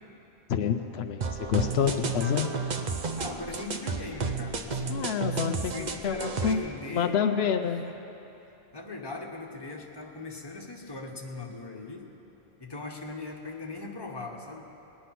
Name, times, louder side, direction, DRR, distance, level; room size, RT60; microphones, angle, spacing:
voice 1, 0.5-2.6 4.9-6.6 6.9-7.8, left 7 dB, 80° left, 7 dB, 0.9 m, -28 dB
sound 1, 1.2-6.5, right 4 dB, 45° right, 0.8 m, -32 dB
voice 2, 3.2-5.0 5.3-7.4 8.7-12.1 12.6-14.6, left 3 dB, 25° left, 0 dB, 1.3 m, -39 dB
20.0 x 9.6 x 5.9 m, 3.0 s
omnidirectional pair, 1.1 m